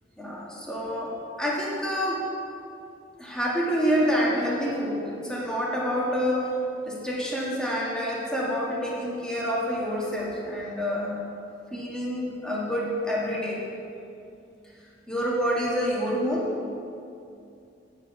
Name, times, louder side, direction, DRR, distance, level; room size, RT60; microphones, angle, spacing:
voice 1, 0.2-2.2 3.2-6.5 6.8-11.2 11.7-13.6 15.1-16.5, equal, 5° left, -5 dB, 1.6 m, -27 dB
9.3 x 6.7 x 6.1 m, 2.6 s
head